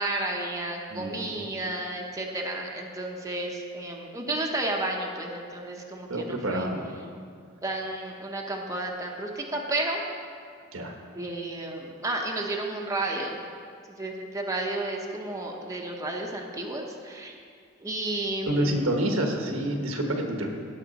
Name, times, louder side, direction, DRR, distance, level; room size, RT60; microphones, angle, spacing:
voice 1, 0.0-6.7 7.6-10.0 11.1-13.4 13.9-17.3 17.8-19.0, right 2 dB, 15° right, 0 dB, 0.8 m, -32 dB
voice 2, 0.9-1.3 6.1-6.8 10.7-10.9 18.5-20.5, right 1 dB, 80° right, 3 dB, 1.2 m, -28 dB
16.5 x 5.8 x 4.1 m, 2.2 s
head